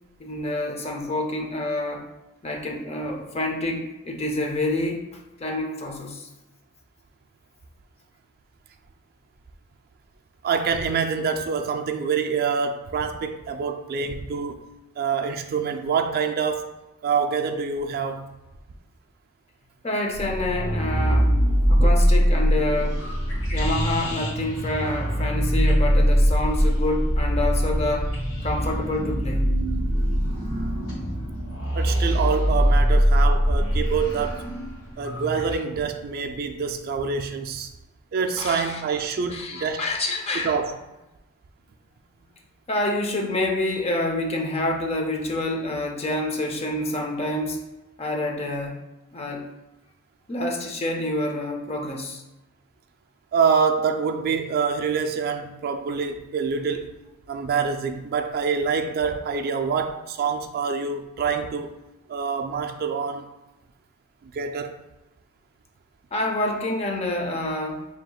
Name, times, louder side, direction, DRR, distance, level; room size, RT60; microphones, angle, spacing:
voice 1, 0.2-2.0 2.4-5.1 5.4-6.3 19.8-21.4 21.7-23.0 23.3-28.1 28.4-29.4 38.4-38.8 39.3-40.5 42.7-47.6 48.0-48.8 49.1-49.4 50.3-52.2 66.1-67.9, left 1 dB, 30° left, 0.6 m, -27 dB
voice 2, 10.4-14.6 15.0-16.7 17.0-18.3 21.7-21.9 31.7-34.5 35.0-37.7 38.1-39.8 40.3-40.8 53.3-56.9 57.3-61.8 62.1-63.3 64.2-64.8, right 5 dB, 45° right, 0.3 m, -26 dB
sound 1, 20.1-35.5, equal, 90° left, 1.4 m, -22 dB
5.7 x 2.8 x 2.3 m
head